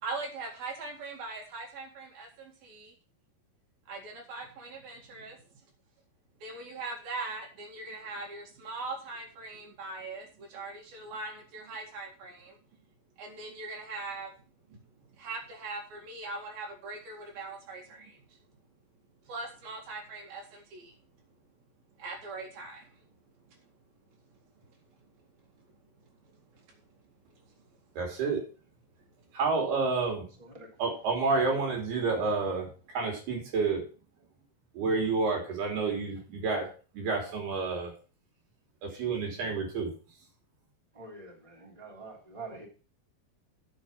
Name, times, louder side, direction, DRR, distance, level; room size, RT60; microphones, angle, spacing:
voice 1, 0.0-2.9 3.9-5.4 6.4-12.6 13.2-14.3 14.7-14.8 15.2-18.2 19.3-20.9 22.0-22.9, right 3 dB, 70° right, 1 dB, 3.9 m, -41 dB
voice 2, 28.0-28.4 29.3-30.3 30.8-32.7 33.0-33.8 34.8-36.7 36.9-37.9 38.8-39.9, right 4 dB, 90° right, 0 dB, 5.3 m, -29 dB
voice 3, 40.9-42.7, right 3 dB, 10° right, -2 dB, 2.9 m, -45 dB
9.0 x 7.5 x 5.7 m, 0.36 s
omnidirectional pair, 4.4 m